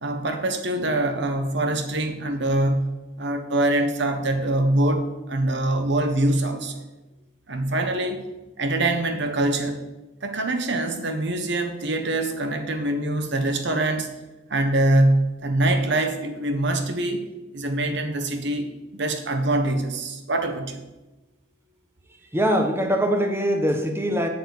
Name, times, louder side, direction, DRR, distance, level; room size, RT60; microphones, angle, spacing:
voice 1, 0.0-6.8 7.5-8.2 8.6-9.8 10.2-14.1 14.5-17.2 17.5-20.8, right 1 dB, 65° right, 7 dB, 1.3 m, -24 dB
voice 2, 22.3-24.3, equal, 15° right, 4 dB, 1.1 m, -22 dB
9.0 x 6.9 x 8.6 m, 1.1 s
head